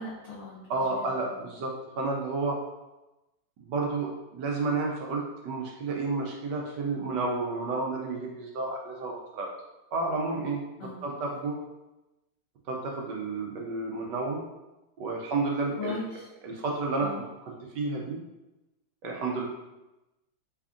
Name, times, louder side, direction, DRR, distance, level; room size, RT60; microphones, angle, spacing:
voice 1, 0.0-1.1 1.3-1.4 10.8-11.0 15.8-16.3 17.0-17.2, left 3 dB, 90° left, -6 dB, 0.7 m, -38 dB
voice 2, 0.7-2.6 3.6-9.5 9.9-10.6 11.0-11.6 12.7-14.4 15.0-15.9 16.4-18.2 19.0-19.5, right 3 dB, 75° right, -1 dB, 1.1 m, -31 dB
3.4 x 2.3 x 3.6 m, 1.0 s
omnidirectional pair, 2.2 m